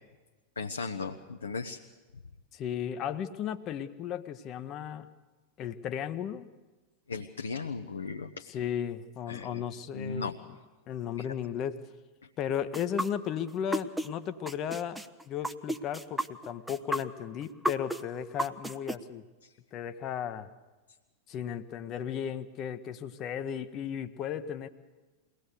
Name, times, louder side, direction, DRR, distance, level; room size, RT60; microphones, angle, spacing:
voice 1, 0.6-1.8 7.1-8.3 9.3-9.6 9.9-10.4 11.2-11.3 19.4-19.5, left 4 dB, 75° left, 5 dB, 0.7 m, -36 dB
voice 2, 2.5-5.1 5.6-6.5 8.5-10.3 10.9-11.8 12.4-15.0 15.3-19.2 19.7-20.5 21.3-24.7, left 9 dB, 35° left, 10 dB, 0.8 m, -35 dB
sound 1, 12.7-14.1 14.5-18.9, right 1 dB, 5° right, 0.7 m, -32 dB
22.5 x 17.5 x 6.7 m, 1.2 s
figure-of-eight pair, 90°, 0 cm